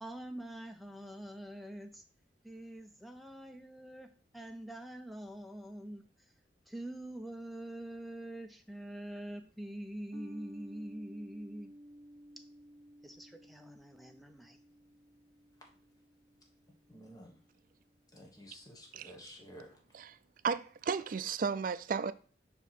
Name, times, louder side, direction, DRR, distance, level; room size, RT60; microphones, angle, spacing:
voice 1, 0.0-2.0 2.4-6.0 6.7-11.7 13.0-14.6, right 1 dB, ahead, 0.6 m, -45 dB
sound 1, 10.1-16.9, equal, 65° right, 1.0 m, -53 dB
voice 2, 16.9-17.4 18.1-19.8, equal, 20° left, 1.3 m, -52 dB
voice 3, 20.4-22.1, right 5 dB, 50° right, 0.4 m, -34 dB
5.5 x 4.7 x 4.1 m
head